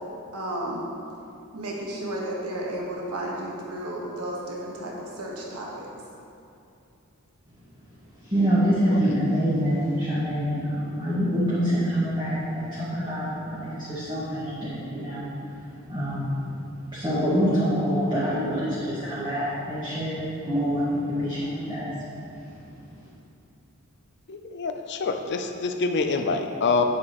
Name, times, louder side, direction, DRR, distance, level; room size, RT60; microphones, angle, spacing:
voice 1, 0.3-0.9 1.5-5.9, right 1 dB, 85° right, -3 dB, 1.3 m, -33 dB
voice 2, 8.3-15.3 15.9-16.3 16.9-21.9, equal, 20° right, -11 dB, 1.6 m, -26 dB
voice 3, 24.3-26.8, left 4 dB, 50° left, 5 dB, 0.5 m, -26 dB
8.3 x 7.5 x 3.0 m, 2.6 s
head